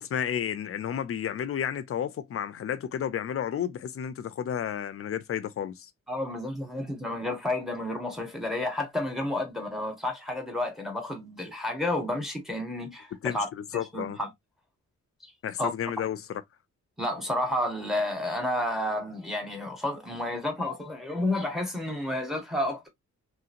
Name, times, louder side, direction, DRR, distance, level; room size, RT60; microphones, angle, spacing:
voice 1, 0.0-5.9 13.2-14.2 15.4-16.4, left 9 dB, 50° left, 0.4 m, -32 dB
voice 2, 6.1-13.5 13.7-14.3 15.6-15.7 17.0-22.9, left 1 dB, ahead, 0.8 m, -31 dB
3.1 x 2.8 x 2.4 m
wide cardioid pair, 170°, 30 cm